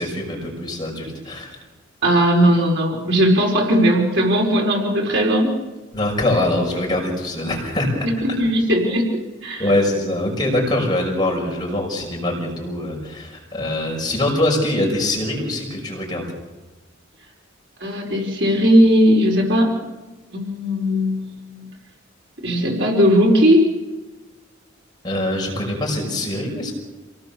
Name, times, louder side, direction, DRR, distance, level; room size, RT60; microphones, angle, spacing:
voice 1, 0.0-1.6 5.9-8.1 9.6-16.3 25.0-26.7, left 1 dB, 20° left, 0 dB, 5.8 m, -23 dB
voice 2, 2.0-5.6 8.0-9.7 17.8-19.7 20.3-21.6 22.4-23.7, equal, 65° right, 0 dB, 5.0 m, -18 dB
28.0 x 18.5 x 7.0 m, 1.2 s
head